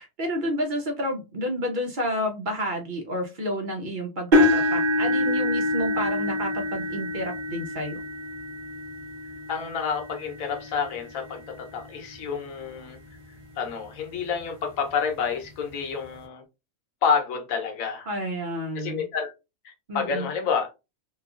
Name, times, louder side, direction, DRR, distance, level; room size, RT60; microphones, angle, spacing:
voice 1, 0.0-8.0 18.1-19.1 19.9-20.3, equal, 65° right, 0.4 m, -30 dB
sound 1, 4.3-12.3 13.0-13.2 13.7-13.8 15.1-15.2, left 1 dB, 35° right, 0.9 m, -26 dB
voice 2, 9.5-13.0 13.6-16.4 17.0-18.1 18.8-19.3 19.6-20.7, left 6 dB, 70° left, 1.1 m, -29 dB
2.9 x 2.3 x 2.4 m
omnidirectional pair, 1.6 m